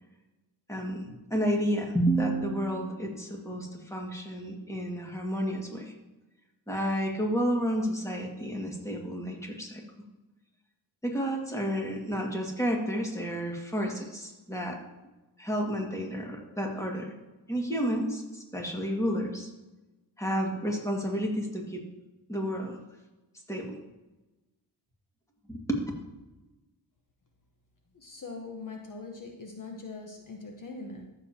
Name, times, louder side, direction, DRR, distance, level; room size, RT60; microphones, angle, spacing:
voice 1, 0.7-1.1 1.3-5.9 6.7-9.8 11.0-14.8 15.4-17.1 17.5-19.5 20.2-21.8 22.3-22.8 23.5-23.8 25.5-25.8, equal, 5° left, 0 dB, 2.0 m, -31 dB
voice 2, 27.9-31.1, left 3 dB, 50° left, 2 dB, 1.1 m, -42 dB
14.0 x 7.0 x 2.9 m, 1.1 s
cardioid pair, 85°, 42 cm